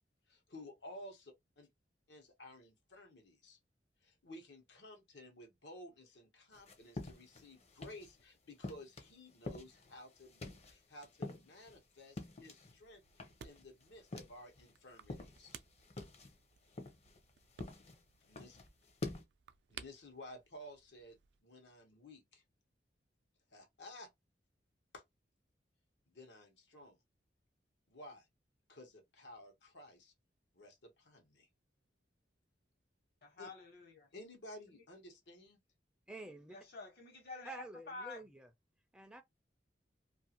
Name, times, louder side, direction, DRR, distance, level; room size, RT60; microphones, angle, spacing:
voice 1, 0.3-1.7 2.1-3.6 4.0-13.0 13.4-15.6 18.2-18.6 19.7-21.2 21.4-22.4 23.5-24.1 24.9-25.0 26.1-27.0 27.9-28.3 28.7-30.1 30.5-31.5 33.4-33.5 34.1-35.6, left 1 dB, 85° left, 1.1 m, -54 dB
sound 1, 6.5-8.2 8.6-12.8 13.1-14.7 15.0-19.2, left 2 dB, 40° left, 0.7 m, -48 dB
sound 2, 12.7-21.4, right 7 dB, 75° right, 0.4 m, -58 dB
voice 2, 33.2-34.1 34.7-34.8 36.5-38.2, left 3 dB, 60° left, 1.2 m, -49 dB
voice 3, 36.1-36.6 37.4-38.5 38.9-39.2, right 2 dB, 5° right, 0.4 m, -49 dB
2.6 x 2.4 x 2.8 m
head